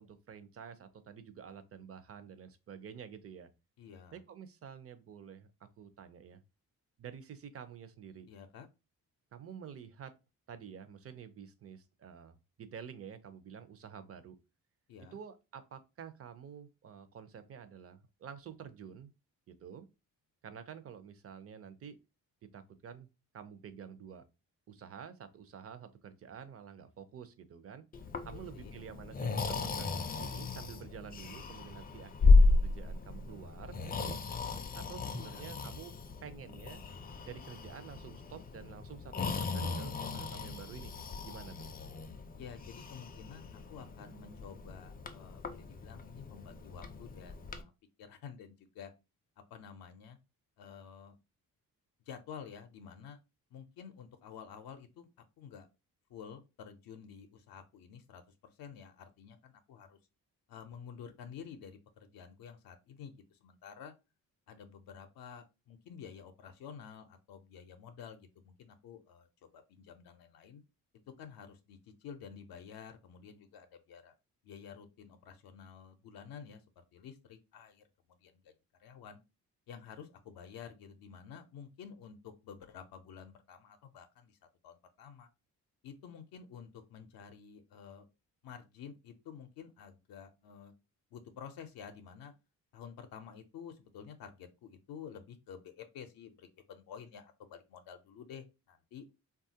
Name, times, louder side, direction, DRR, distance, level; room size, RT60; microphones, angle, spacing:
voice 1, 0.0-3.5 4.1-5.5 5.8-6.4 7.0-8.3 9.3-10.1 10.5-14.4 15.1-19.1 19.5-19.9 20.4-22.0 22.4-23.1 23.3-24.2 24.7-27.8 28.2-34.2 34.7-36.8 37.3-40.9 41.2-41.7, right 7 dB, 40° right, 0.5 m, -49 dB
voice 2, 3.8-4.2 8.3-8.7 14.9-15.2 28.3-28.7 35.2-35.4 42.4-47.7 48.0-48.9 49.5-50.2 50.6-51.2 52.1-53.2 53.5-55.1 55.4-55.7 56.1-60.0 60.5-63.9 64.5-70.6 71.1-74.1 74.4-78.5 78.8-79.2 79.7-84.4 84.6-85.3 85.8-88.1 88.4-90.7 91.1-92.3 92.7-99.0, left 7 dB, 75° left, 0.5 m, -50 dB
Breathing, 27.9-47.6, left 3 dB, 25° left, 0.4 m, -33 dB
3.1 x 2.3 x 2.7 m
cardioid pair, 90°, 36 cm